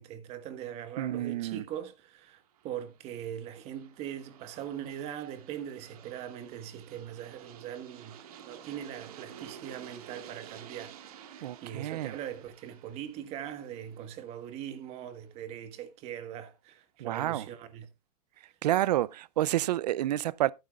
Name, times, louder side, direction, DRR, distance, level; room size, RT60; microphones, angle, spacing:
voice 1, 0.0-8.2 8.4-10.9 11.3-17.9, right 10 dB, 30° right, 1.4 m, -41 dB
voice 2, 1.0-1.6 11.4-12.1 17.0-17.5 18.6-20.5, right 14 dB, 90° right, 0.5 m, -29 dB
Aircraft, 2.3-15.2, right 9 dB, 65° right, 1.7 m, -52 dB
14.0 x 9.1 x 2.4 m
supercardioid pair, 160°, 20 cm